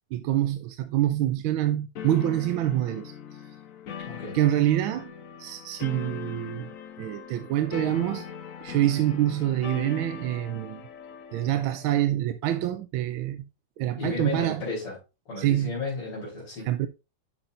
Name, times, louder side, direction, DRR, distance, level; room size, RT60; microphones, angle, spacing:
voice 1, 0.1-3.5 4.3-5.1 5.4-6.7 7.0-8.3 8.6-10.8 11.3-13.4 13.8-14.6 15.4-15.8 16.6-16.9, right 13 dB, 75° right, 1.3 m, -26 dB
sound 1, 1.9-12.0, left 8 dB, 65° left, 0.8 m, -40 dB
voice 2, 4.0-4.4 14.0-15.0 15.3-16.7, left 3 dB, 80° left, 5.0 m, -33 dB
11.0 x 5.8 x 2.5 m
omnidirectional pair, 2.4 m